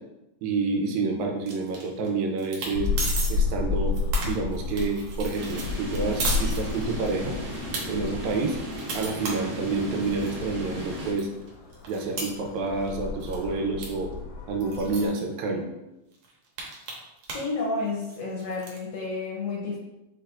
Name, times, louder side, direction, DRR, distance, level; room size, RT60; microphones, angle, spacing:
voice 1, 0.4-2.9 3.3-3.9 4.2-7.4 7.9-8.6 8.9-11.3 11.9-14.1 14.5-15.7, right 3 dB, 85° right, 2 dB, 2.0 m, -28 dB
sound 1, 1.5-2.1 2.4-2.7 3.0-3.3 3.7-7.1 7.5-7.8 8.3-10.3 10.8-10.9 11.2-13.0 13.2-13.5 13.8-13.9 14.1-14.2 14.6-15.2 15.8-15.9 16.1-17.5 17.8-18.8, right 3 dB, 70° right, 1.8 m, -34 dB
sound 2, 2.7-15.1, left 4 dB, 85° left, 2.2 m, -32 dB
sound 3, 5.3-11.1, equal, 50° right, 2.1 m, -36 dB
voice 2, 17.3-19.8, left 3 dB, 70° left, -3 dB, 1.5 m, -31 dB
6.2 x 3.3 x 2.4 m, 0.94 s
omnidirectional pair, 3.3 m